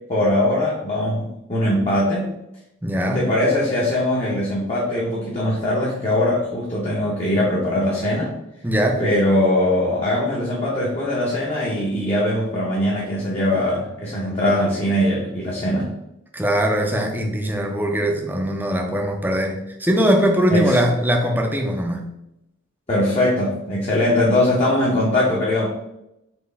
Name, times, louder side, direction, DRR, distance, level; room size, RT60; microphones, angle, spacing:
voice 1, 0.1-2.3 3.1-8.3 9.0-15.9 20.5-20.8 22.9-25.7, left 1 dB, 30° left, -5 dB, 0.8 m, -21 dB
voice 2, 2.8-3.3 8.6-9.0 16.3-22.1, equal, 10° right, 1 dB, 0.5 m, -21 dB
4.5 x 2.8 x 3.4 m, 0.86 s
head